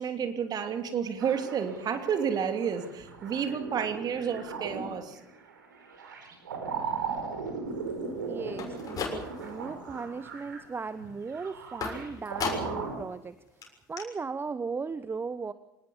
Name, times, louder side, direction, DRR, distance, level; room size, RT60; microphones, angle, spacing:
voice 1, 0.0-5.2, right 7 dB, 40° right, 7 dB, 3.0 m, -30 dB
sound 1, 1.2-12.9, right 5 dB, 75° right, 4.6 m, -38 dB
voice 2, 8.2-15.5, right 4 dB, 20° right, 14 dB, 1.0 m, -37 dB
sound 2, 8.5-9.6 10.0-10.5 11.8-12.9 13.3-13.4 13.6-13.7 14.0-14.1, left 5 dB, 35° left, 6.7 m, -36 dB
25.0 x 19.5 x 7.2 m, 0.89 s
figure-of-eight pair, 65°, 11 cm